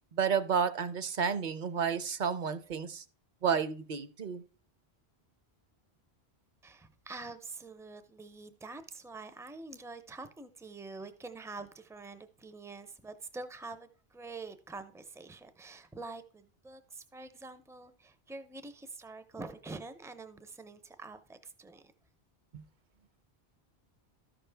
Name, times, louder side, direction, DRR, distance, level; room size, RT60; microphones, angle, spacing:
voice 1, 0.1-3.0 3.4-4.4, right 6 dB, 55° right, 0.7 m, -31 dB
voice 2, 6.6-21.9, right 3 dB, 5° right, 0.3 m, -46 dB
13.0 x 5.9 x 3.3 m
omnidirectional pair, 1.1 m